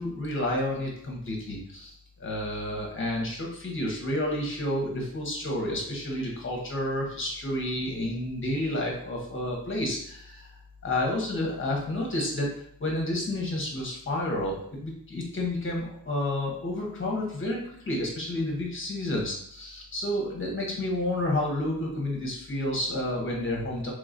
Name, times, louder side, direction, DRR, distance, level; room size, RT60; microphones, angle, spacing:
voice 1, 0.0-10.5 10.8-12.5 12.8-23.9, left 1 dB, 30° left, -1 dB, 1.1 m, -30 dB
3.3 x 2.9 x 3.8 m, 0.65 s
wide cardioid pair, 165°, 40 cm